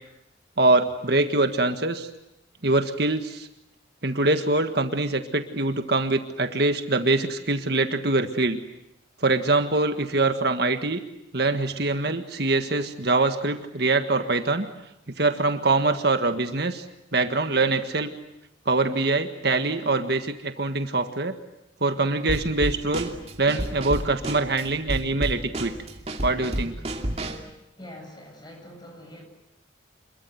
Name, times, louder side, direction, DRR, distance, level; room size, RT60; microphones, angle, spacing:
voice 1, 0.6-2.1 2.6-3.5 4.0-8.6 9.2-11.0 11.3-14.7 15.2-16.9 17.1-18.1 18.7-21.4 21.8-23.1 23.4-25.7 26.2-26.8, right 2 dB, 55° right, 7 dB, 1.6 m, -24 dB
Drum kit / Snare drum, 22.3-27.5, right 1 dB, 30° right, 2.6 m, -31 dB
voice 2, 27.8-29.3, left 1 dB, 20° left, 3 dB, 7.7 m, -44 dB
27.5 x 22.5 x 9.4 m, 0.85 s
head